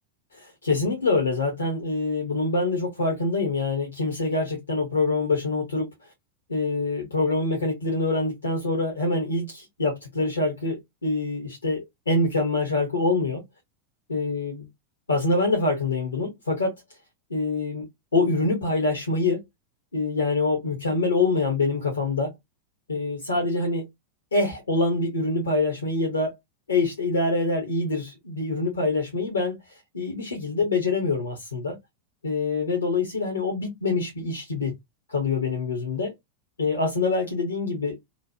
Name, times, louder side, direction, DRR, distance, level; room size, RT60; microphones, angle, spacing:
voice 1, 0.3-5.9 6.5-13.4 14.1-14.6 15.1-16.7 17.3-17.9 18.1-19.4 19.9-22.3 22.9-23.8 24.3-26.4 26.7-29.6 29.9-31.8 32.2-34.7 35.1-36.1 36.6-38.0, left 3 dB, 75° left, 1.0 m, -25 dB
3.1 x 2.3 x 2.7 m
figure-of-eight pair, 90°, 0 cm